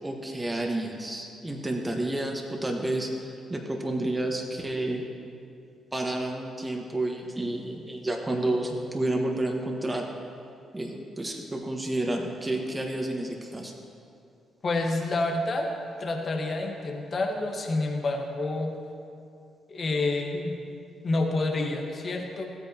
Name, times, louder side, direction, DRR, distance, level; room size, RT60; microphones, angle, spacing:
voice 1, 0.0-5.1 5.9-10.1 10.7-13.7, right 1 dB, 20° right, 1 dB, 1.4 m, -30 dB
voice 2, 14.6-15.7 16.0-18.7 19.7-20.6 21.0-22.5, left 2 dB, 50° left, 2 dB, 1.3 m, -28 dB
15.5 x 8.6 x 2.9 m, 2.6 s
hypercardioid pair, 45°, 0 cm